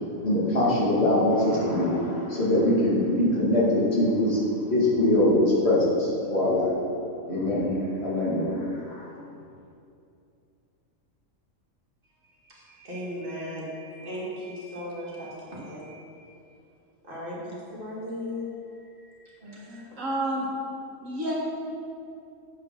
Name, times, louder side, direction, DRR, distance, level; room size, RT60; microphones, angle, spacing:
voice 1, 0.2-4.4 4.7-6.7 7.3-7.7 8.0-8.5 8.9-9.1, left 1 dB, 50° left, -7 dB, 2.3 m, -23 dB
voice 2, 12.4-16.3 17.0-19.9, left 1 dB, 40° right, -6 dB, 2.1 m, -37 dB
voice 3, 19.9-20.5 21.0-21.3, right 1 dB, 70° right, -4 dB, 2.0 m, -29 dB
8.4 x 5.6 x 5.8 m, 2.6 s
omnidirectional pair, 1.4 m